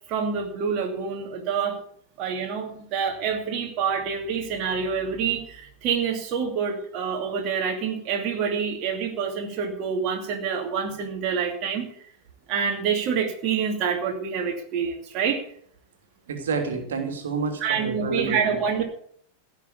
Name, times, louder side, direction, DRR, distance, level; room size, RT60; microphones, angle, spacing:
voice 1, 0.1-1.8 2.2-11.9 12.5-15.4 17.6-18.8, right 6 dB, 40° right, 1 dB, 2.7 m, -27 dB
voice 2, 16.3-18.6, right 4 dB, 65° right, 4 dB, 2.9 m, -29 dB
16.5 x 6.8 x 8.5 m, 0.62 s
figure-of-eight pair, 90°, 0 cm